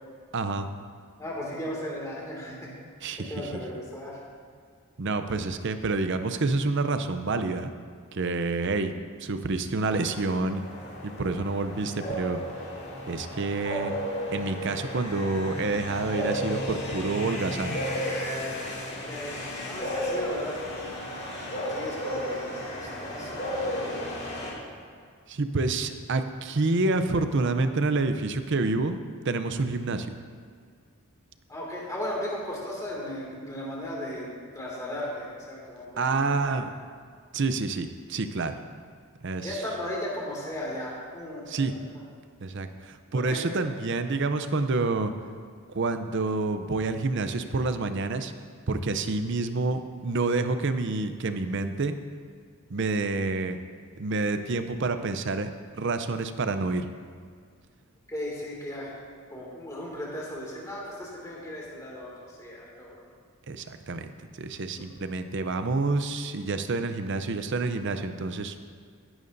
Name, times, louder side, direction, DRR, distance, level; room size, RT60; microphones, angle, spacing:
voice 1, 0.3-0.7 3.0-3.6 5.0-7.7 8.1-8.9 9.2-10.6 11.0-12.4 13.1-13.9 14.3-17.8 25.3-29.0 29.2-30.2 36.0-36.7 37.3-38.6 39.2-39.6 41.5-41.7 42.4-45.1 45.7-48.3 48.7-51.9 52.7-53.6 54.0-55.5 55.7-56.9 63.5-64.1 64.4-68.6, right 3 dB, 55° right, 9 dB, 0.6 m, -28 dB
voice 2, 1.2-2.7 3.2-4.2 19.1-20.6 21.7-22.4 22.7-23.7 31.5-36.2 36.5-36.6 39.4-41.8 43.3-43.4 58.1-58.9 59.3-62.9 64.7-64.8, left 1 dB, 15° left, -4 dB, 2.3 m, -36 dB
sound 1, 9.8-24.5, equal, 50° left, 2.4 m, -33 dB
16.0 x 11.0 x 2.7 m, 2.1 s
head